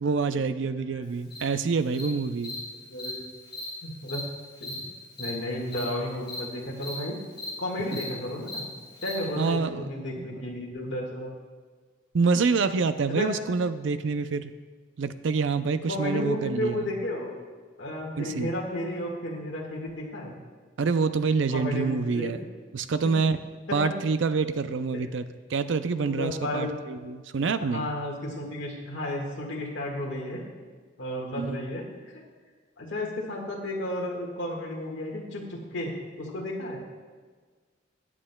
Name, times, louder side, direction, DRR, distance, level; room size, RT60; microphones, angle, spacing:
voice 1, 0.0-2.5 9.4-9.8 10.2-10.4 12.1-14.5 15.0-16.9 18.2-18.5 20.8-22.4 22.7-23.4 23.7-27.9 31.4-31.6, right 4 dB, 70° right, 12 dB, 0.5 m, -27 dB
Cricket, 1.3-1.4 1.9-2.1 2.4-2.6 3.0-3.1 3.5-3.6 4.1-4.2 4.6-4.7 5.2-5.3 5.7-5.8 6.3-6.4 6.8-6.9 7.4-7.5 7.9-8.0 8.5-8.6 9.0-9.1, left 1 dB, 25° left, 3.0 m, -37 dB
voice 2, 2.8-3.3 3.8-4.3 4.6-4.8 5.2-7.2 7.6-8.7 9.0-11.3 13.1-13.3 15.9-17.3 17.8-20.3 21.5-22.4 23.7-24.0 24.9-25.0 25.9-26.7 27.6-30.4 31.0-31.9 32.1-32.2 32.8-36.8, left 1 dB, 70° left, -2 dB, 1.7 m, -33 dB
19.0 x 7.5 x 2.3 m, 1.5 s
head